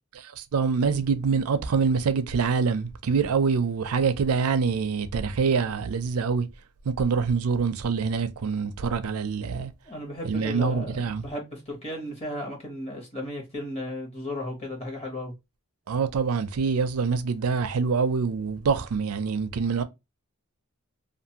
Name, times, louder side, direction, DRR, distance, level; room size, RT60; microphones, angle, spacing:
voice 1, 0.5-6.5 6.9-9.7 10.2-11.2 15.9-19.8, right 5 dB, 90° right, 0.5 m, -25 dB
voice 2, 9.8-15.3, left 1 dB, 30° left, 1.2 m, -35 dB
2.6 x 2.5 x 2.8 m
head